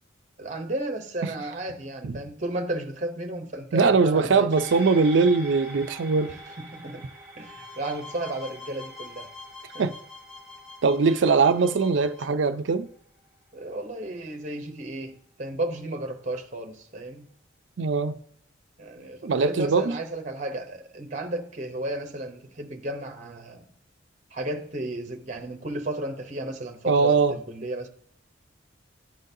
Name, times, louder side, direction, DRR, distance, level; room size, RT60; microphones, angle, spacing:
voice 1, 0.4-4.5 6.3-7.1 7.4-9.3 9.7-9.9 11.1-11.2 13.5-17.3 18.8-23.7 24.3-27.9, right 1 dB, 40° right, 0.8 m, -33 dB
voice 2, 3.7-6.3 9.8-9.9 10.8-12.9 17.8-18.1 19.2-20.0 26.9-27.4, right 4 dB, 70° right, 0.5 m, -21 dB
sound 1, 4.5-13.2 13.6-13.7, right 1 dB, 15° right, 1.9 m, -45 dB
sound 2, 7.4-12.3, left 3 dB, 5° left, 1.9 m, -45 dB
12.0 x 3.9 x 2.7 m
head